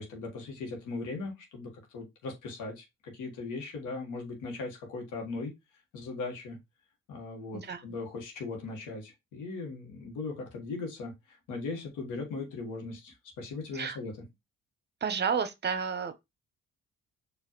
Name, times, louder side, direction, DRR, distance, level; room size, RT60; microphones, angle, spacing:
voice 1, 0.0-5.5 5.9-6.6 7.1-14.1, left 3 dB, 90° left, 1.7 m, -39 dB
voice 2, 15.0-16.2, right 6 dB, 35° right, 0.8 m, -31 dB
4.7 x 3.0 x 3.0 m
cardioid pair, 90°, 30 cm